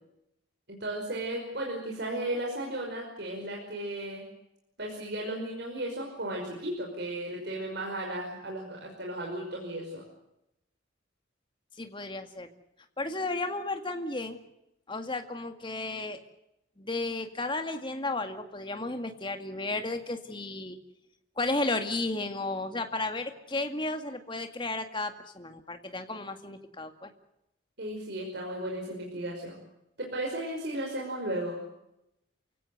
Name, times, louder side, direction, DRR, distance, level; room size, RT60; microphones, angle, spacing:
voice 1, 0.7-4.3 4.8-10.0 27.8-29.6 30.0-31.6, right 1 dB, 55° right, -1 dB, 5.5 m, -35 dB
voice 2, 11.8-12.5 13.0-14.4 14.9-16.2 16.8-20.8 21.4-27.1, left 2 dB, 25° left, 6 dB, 2.1 m, -33 dB
28.5 x 17.0 x 8.0 m, 0.84 s
head